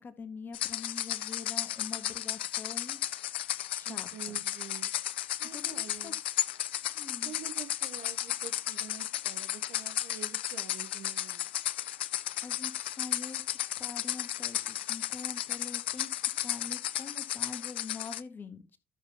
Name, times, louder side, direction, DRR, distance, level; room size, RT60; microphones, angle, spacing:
voice 1, 0.0-3.0 3.7-4.4 5.4-6.1 6.9-7.3 12.4-13.4 13.8-16.1 16.4-18.8, left 4 dB, 35° left, 1.7 m, -44 dB
sound 1, 0.5-18.2, left 13 dB, 75° left, 0.4 m, -34 dB
voice 2, 3.8-4.9 5.4-6.2 7.2-11.5, right 9 dB, 55° right, 0.9 m, -47 dB
13.5 x 7.2 x 2.9 m
figure-of-eight pair, 50°, 6 cm